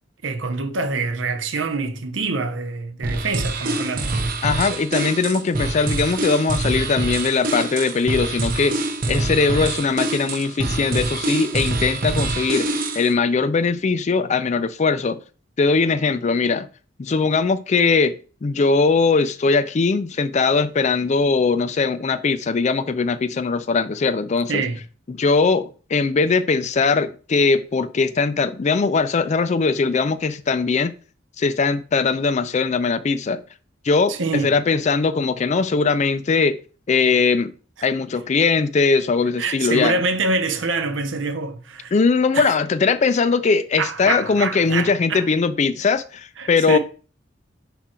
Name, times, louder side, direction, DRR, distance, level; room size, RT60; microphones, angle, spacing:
voice 1, 0.2-4.1 24.5-24.8 34.1-34.5 39.4-41.9 42.3-42.5 43.8-45.3 46.4-46.8, right 3 dB, 75° right, 0.8 m, -25 dB
sound 1, 3.0-13.1, right 2 dB, 45° right, 0.8 m, -25 dB
voice 2, 4.4-8.8 9.1-12.7 12.9-15.2 15.6-16.7 17.0-24.6 25.1-30.9 31.4-33.4 33.8-36.6 36.9-37.5 37.8-40.0 41.9-46.8, left 4 dB, 35° left, 0.4 m, -20 dB
5.9 x 3.8 x 4.3 m
head